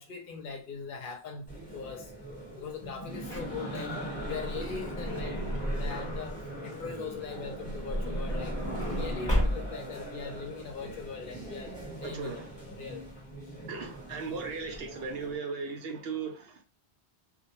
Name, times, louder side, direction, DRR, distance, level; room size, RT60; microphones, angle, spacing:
voice 1, 0.0-2.1 2.6-8.6 8.8-11.7 12.0-12.4 12.7-13.0, left 5 dB, 55° left, 0.7 m, -41 dB
sound 1, 1.5-15.4, right 1 dB, 5° left, 1.1 m, -41 dB
Truck / Door, 3.2-6.4 7.4-10.0 10.7-10.8 10.9-11.1, equal, 30° left, 0.7 m, -33 dB
voice 2, 12.0-12.4 13.7-16.6, right 5 dB, 70° right, 0.8 m, -37 dB
2.2 x 2.1 x 2.9 m
omnidirectional pair, 1.1 m